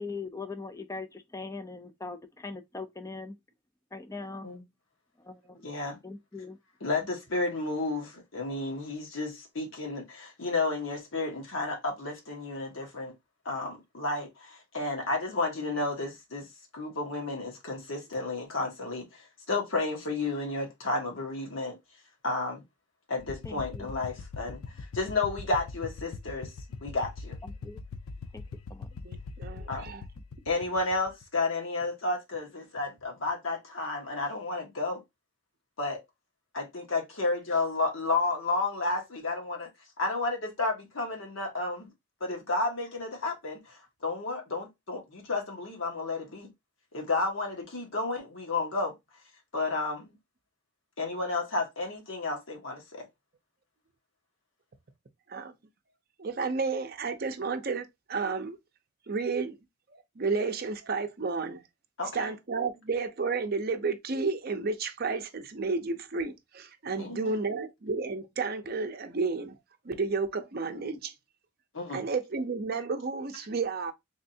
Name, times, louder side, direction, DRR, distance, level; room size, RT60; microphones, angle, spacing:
voice 1, 0.0-3.3 3.9-4.5 5.2-5.6 6.0-6.6 23.4-23.9 27.4-27.8 28.3-28.4 28.7-28.9, left 3 dB, 15° left, 0.4 m, -40 dB
voice 2, 5.6-6.0 6.8-13.1 13.4-16.5 16.7-21.8 22.2-22.6 23.1-26.5 26.8-27.4 29.7-29.8 30.5-35.0 35.8-36.0 36.5-39.7 40.0-41.9 42.2-46.5 46.9-48.9 49.5-50.1 51.0-53.1 62.0-62.3 67.0-67.4 71.7-72.0, left 3 dB, 65° left, 1.3 m, -32 dB
sound 1, 23.2-31.4, left 4 dB, 85° left, 0.4 m, -42 dB
voice 3, 29.0-30.0 55.3-55.5 56.2-58.6 59.1-59.6 59.9-61.6 62.1-69.5 69.8-71.1 71.9-73.9, right 4 dB, 45° right, 0.6 m, -32 dB
3.5 x 3.2 x 2.7 m
head